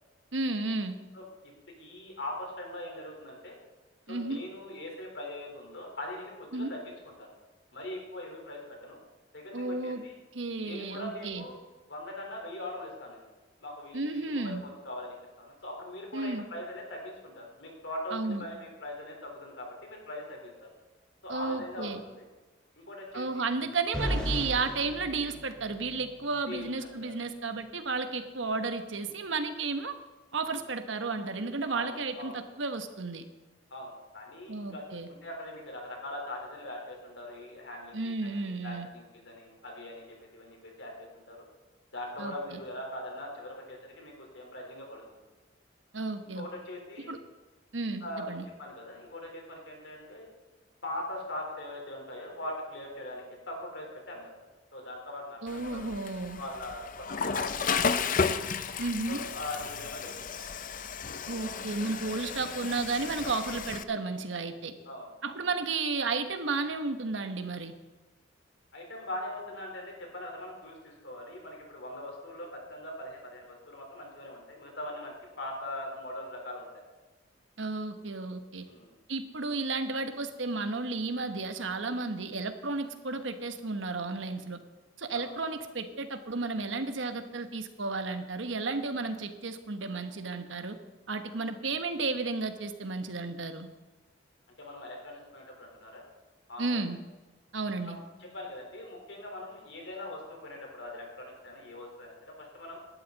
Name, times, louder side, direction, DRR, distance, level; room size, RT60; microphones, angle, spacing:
voice 1, 0.3-1.0 4.1-4.4 6.5-6.7 9.5-10.0 10.3-11.4 13.9-14.6 16.1-16.4 18.1-18.5 21.3-22.0 23.1-30.0 30.3-33.2 34.5-35.1 37.9-38.9 42.2-42.6 45.9-46.4 47.1-47.2 47.7-48.5 55.4-56.4 58.8-59.2 61.3-64.7 65.2-67.7 77.6-78.6 79.1-84.6 85.0-90.8 91.1-93.7 96.6-97.0 97.5-98.0, right 3 dB, 85° right, 8 dB, 1.2 m, -33 dB
voice 2, 1.8-3.6 4.1-7.3 7.7-9.0 9.3-10.2 10.6-11.6 11.9-13.3 13.6-20.7 21.2-22.3 22.8-23.5 26.5-26.7 27.0-27.1 31.7-32.4 33.7-41.4 41.9-45.2 46.3-47.1 48.0-50.3 50.8-54.3 54.7-55.9 56.4-58.0 59.1-60.5 61.3-61.5 64.9-65.4 68.7-76.7 78.7-79.0 85.1-85.6 94.6-96.0 96.5-96.9 97.9-102.8, left 1 dB, 70° left, 0 dB, 4.1 m, -41 dB
sound 1, 23.9-26.1, equal, 5° left, 4.5 m, -34 dB
Water / Toilet flush, 55.5-63.8, left 5 dB, 45° left, 0.6 m, -33 dB
18.0 x 11.5 x 4.1 m, 1.2 s
head